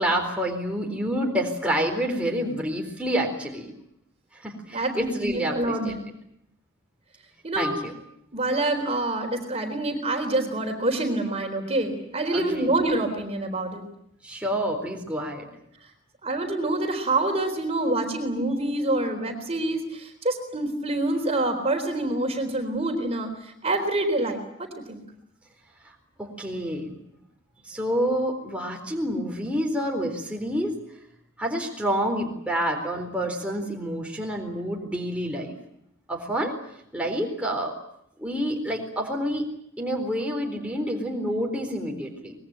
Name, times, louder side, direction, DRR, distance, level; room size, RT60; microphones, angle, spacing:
voice 1, 0.0-3.7 4.3-6.0 7.5-7.7 12.3-12.7 14.2-15.5 25.8-27.0 27.6-30.7 31.4-35.5 36.1-36.5 36.9-37.8 38.2-39.5 39.8-42.3, equal, 5° right, 0 dB, 4.0 m, -28 dB
voice 2, 4.7-6.0 7.4-7.7 8.3-13.9 16.2-25.0, right 2 dB, 30° right, 5 dB, 4.0 m, -26 dB
25.0 x 21.5 x 8.8 m, 0.75 s
head